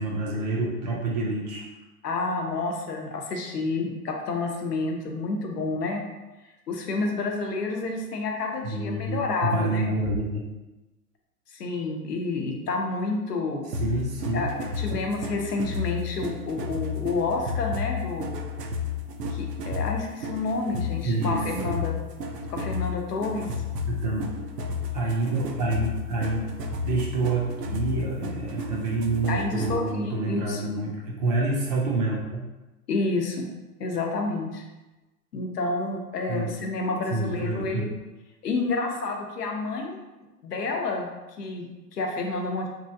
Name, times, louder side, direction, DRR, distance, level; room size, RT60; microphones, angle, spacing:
voice 1, 0.0-1.6 8.6-10.4 13.8-14.5 14.9-15.0 21.0-21.8 23.9-24.3 24.9-26.5 26.8-32.4 36.3-36.5 37.1-37.9, right 2 dB, 30° right, -2 dB, 0.4 m, -27 dB
voice 2, 2.0-6.0 6.7-9.9 11.5-13.7 14.3-14.5 14.8-18.3 19.3-22.0 22.5-23.5 29.3-30.6 32.9-33.5 33.8-34.6 35.3-37.9 38.4-40.0 40.4-41.1 41.4-42.7, left 3 dB, 85° left, 2 dB, 0.7 m, -29 dB
sound 1, 13.7-29.9, left 4 dB, 90° right, 0.5 m, -32 dB
3.0 x 2.5 x 2.6 m, 1.1 s
hypercardioid pair, 105°, 46 cm